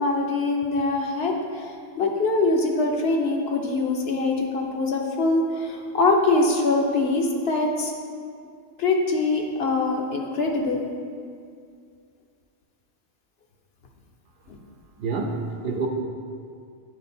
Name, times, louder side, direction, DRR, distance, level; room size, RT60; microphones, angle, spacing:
voice 1, 0.0-1.3 2.0-5.7 5.9-7.9 8.8-10.8, left 3 dB, 60° left, 0 dB, 0.9 m, -23 dB
voice 2, 15.0-15.9, right 4 dB, 60° right, 2 dB, 0.8 m, -27 dB
9.6 x 3.7 x 4.3 m, 2.2 s
omnidirectional pair, 1.2 m